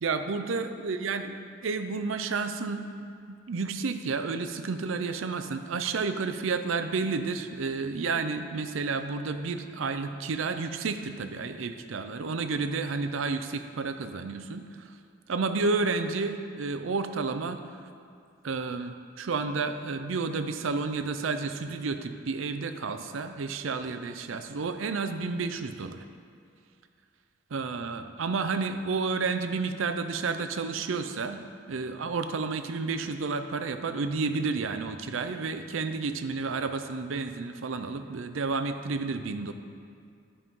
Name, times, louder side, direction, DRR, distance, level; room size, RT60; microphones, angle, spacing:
voice 1, 0.0-1.4 1.6-14.9 15.3-17.6 18.4-26.0 27.5-31.4 31.7-39.5, right 4 dB, 80° right, 9 dB, 0.5 m, -31 dB
12.0 x 5.5 x 3.7 m, 2.3 s
head